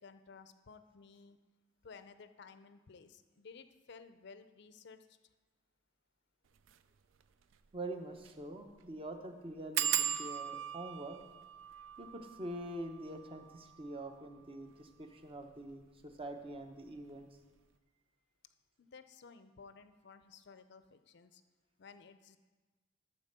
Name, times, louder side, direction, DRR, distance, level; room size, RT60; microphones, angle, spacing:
voice 1, 0.0-1.4 1.8-5.2 18.8-21.4 21.8-22.4, left 5 dB, 60° left, 11 dB, 0.5 m, -55 dB
sound 1, 6.6-6.8 7.2-7.3 7.5-7.6 8.2-8.4 8.7-8.8 9.7-15.0 15.7-16.2 16.5-16.9 17.1-17.2, right 9 dB, 75° right, 0.4 m, -39 dB
voice 2, 7.7-11.2 12.0-17.3, right 1 dB, 30° right, 5 dB, 0.8 m, -45 dB
12.5 x 4.3 x 6.7 m, 1.3 s
head